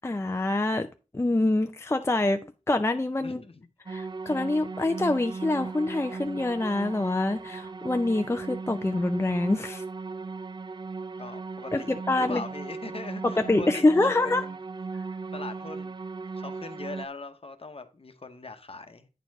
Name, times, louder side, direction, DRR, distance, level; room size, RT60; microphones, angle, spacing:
voice 1, 0.0-0.9 1.1-2.4 2.7-3.4 3.9-9.8 11.7-12.4 13.5-14.4, left 2 dB, 20° left, 0.5 m, -25 dB
voice 2, 3.2-3.7 11.2-11.9 12.2-14.6 15.3-16.0 16.3-19.1, left 3 dB, 50° left, 1.0 m, -41 dB
sound 1, 3.9-17.1, right 4 dB, 35° right, 0.4 m, -37 dB
9.1 x 4.5 x 4.6 m
wide cardioid pair, 60°, 13 cm